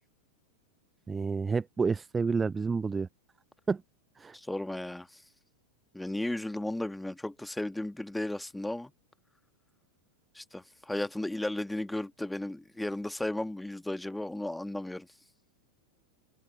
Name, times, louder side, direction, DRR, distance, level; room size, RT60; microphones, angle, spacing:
voice 1, 1.1-3.1 3.7-3.8 4.2-4.4, right 4 dB, 15° right, 0.7 m, -29 dB
voice 2, 4.3-5.2 5.9-8.9 10.4-15.1, left 1 dB, 5° left, 1.7 m, -35 dB
figure-of-eight pair, 90°, 0 cm